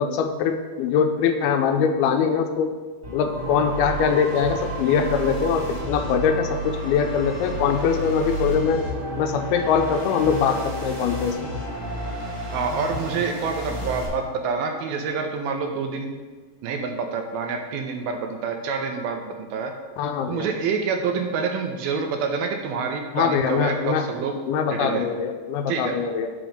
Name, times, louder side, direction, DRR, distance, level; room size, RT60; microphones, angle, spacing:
voice 1, 0.0-2.7 3.1-8.8 9.2-11.5 20.0-20.5 23.1-24.1 24.5-26.3, left 6 dB, 85° left, 6 dB, 2.4 m, -22 dB
sound 1, 3.0-14.1, right 1 dB, 25° right, 1.8 m, -31 dB
voice 2, 12.5-16.1 16.6-19.7 20.3-24.4 24.7-25.1 25.7-26.0, right 5 dB, 80° right, 4 dB, 2.4 m, -27 dB
5.9 x 5.2 x 6.4 m, 1.4 s
omnidirectional pair, 4.5 m